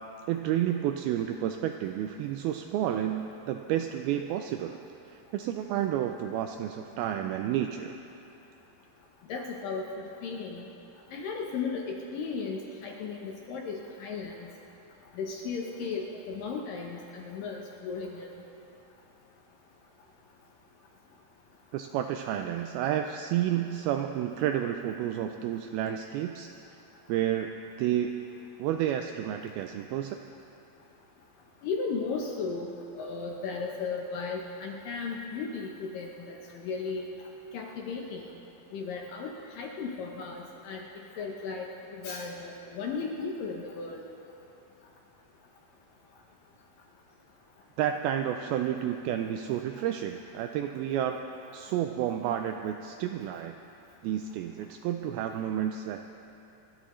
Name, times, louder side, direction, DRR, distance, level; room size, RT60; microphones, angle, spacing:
voice 1, 0.3-4.8 5.1-8.0 21.7-26.5 27.1-28.2 28.6-30.2 47.8-51.2 51.5-53.6 54.0-56.0, right 11 dB, 85° right, 5 dB, 2.2 m, -30 dB
voice 2, 9.3-10.7 11.1-14.5 15.2-18.3 31.6-32.7 33.0-37.1 37.5-38.2 38.7-40.9 41.2-41.7 41.9-44.0, left 4 dB, 70° left, 0 dB, 2.2 m, -35 dB
28.0 x 12.5 x 3.1 m, 2.8 s
omnidirectional pair, 4.8 m